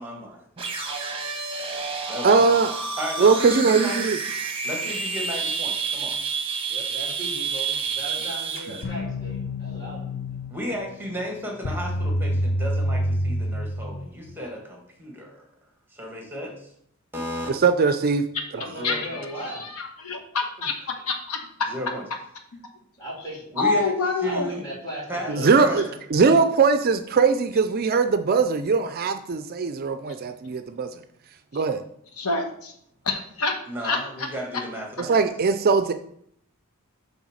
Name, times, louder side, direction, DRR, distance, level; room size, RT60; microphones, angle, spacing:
voice 1, 0.0-0.4 2.1-2.5 3.0-4.1 4.6-6.1 10.5-15.4 16.0-16.7 17.1-17.5 18.7-19.2 21.7-22.0 23.5-23.9 24.2-24.6 25.1-26.0 33.7-35.2, equal, 10° right, 0 dB, 1.4 m, -34 dB
sound 1, 0.6-8.8, right 5 dB, 25° right, 1.1 m, -29 dB
voice 2, 2.2-2.7 3.2-4.2 17.5-18.2 18.5-18.7 25.3-25.8 26.1-30.9 31.5-31.8 35.0-35.9, right 4 dB, 45° right, 9 dB, 0.4 m, -20 dB
voice 3, 6.7-10.2 18.5-19.7 20.6-20.7 23.0-23.4 24.2-25.7, equal, 20° left, -6 dB, 3.2 m, -37 dB
sound 2, 8.8-14.4, equal, 50° left, 0.5 m, -28 dB
voice 4, 18.8-21.7 23.6-24.5 31.5-31.6 32.2-32.7 33.0-33.6 33.8-34.3, left 3 dB, 85° left, 4 dB, 1.1 m, -27 dB
7.9 x 3.5 x 6.3 m, 0.68 s
head